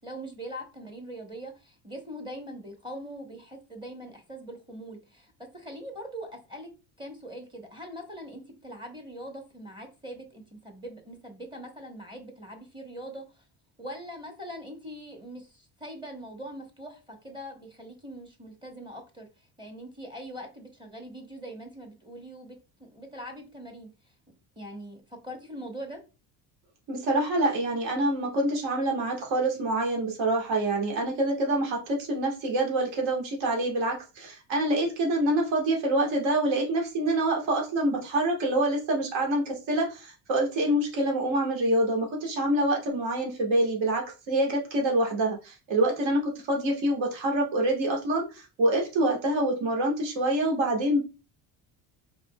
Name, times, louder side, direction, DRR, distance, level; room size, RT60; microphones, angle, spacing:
voice 1, 0.0-13.4 13.8-23.9 24.6-26.0, equal, 10° right, 3 dB, 0.9 m, -42 dB
voice 2, 26.9-51.0, right 1 dB, 70° right, 0 dB, 1.6 m, -26 dB
4.9 x 3.6 x 2.2 m, 0.30 s
cardioid pair, 125°, 44 cm